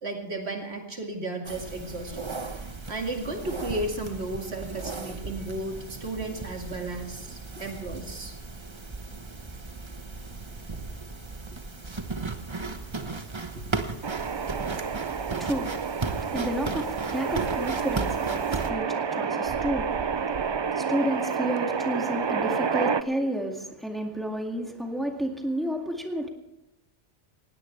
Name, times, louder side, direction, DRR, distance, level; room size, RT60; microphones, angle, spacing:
voice 1, 0.0-2.3 2.9-8.3 13.5-13.6, right 2 dB, 80° right, 2 dB, 2.6 m, -34 dB
sound 1, 1.4-18.7, right 3 dB, 25° right, 1.1 m, -36 dB
sound 2, 14.0-23.0, right 6 dB, 45° right, 0.3 m, -29 dB
voice 2, 14.4-26.3, right 1 dB, ahead, 1 dB, 2.1 m, -32 dB
19.5 x 16.5 x 3.3 m, 0.92 s
omnidirectional pair, 1.1 m